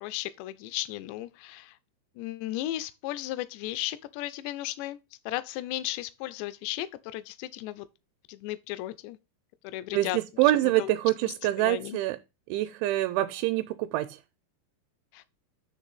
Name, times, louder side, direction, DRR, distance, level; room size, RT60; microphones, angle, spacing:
voice 1, 0.0-1.7 2.2-5.0 5.3-7.9 8.3-9.2 9.6-10.2 10.8-10.9 11.3-12.0 15.1-15.2, left 15 dB, 85° left, 2.6 m, -35 dB
voice 2, 9.9-12.2 12.5-14.2, right 16 dB, 85° right, 2.8 m, -26 dB
9.8 x 3.3 x 5.5 m
omnidirectional pair, 5.5 m